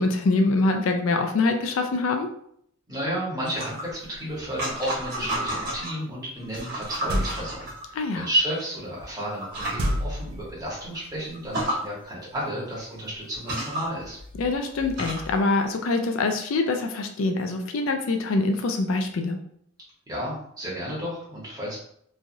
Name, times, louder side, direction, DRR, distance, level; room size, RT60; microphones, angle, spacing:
voice 1, 0.0-2.3 7.9-8.3 14.4-19.4, left 3 dB, 75° left, 5 dB, 0.4 m, -24 dB
voice 2, 2.9-14.2 20.1-21.8, right 1 dB, 20° right, -6 dB, 1.1 m, -32 dB
sound 1, 3.4-6.0 6.4-8.3 9.0-9.1 9.4-9.9 10.4-10.5 10.8-10.9 11.3-11.8 12.8-12.9 13.3-15.4, right 1 dB, 50° right, 1.4 m, -32 dB
sound 2, 7.1-7.7 9.8-10.8, equal, 85° right, 0.5 m, -28 dB
3.2 x 2.3 x 2.6 m, 0.68 s
head